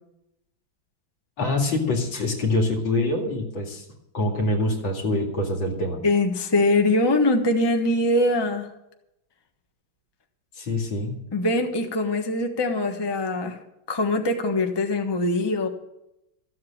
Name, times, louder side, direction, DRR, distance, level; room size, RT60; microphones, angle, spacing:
voice 1, 1.4-3.9 4.1-6.0 10.5-11.2, left 2 dB, 75° left, 2 dB, 3.0 m, -25 dB
voice 2, 6.0-8.7 11.3-13.6 13.9-15.7, left 2 dB, 15° left, 4 dB, 1.1 m, -22 dB
14.0 x 7.7 x 8.7 m, 0.87 s
omnidirectional pair, 2.2 m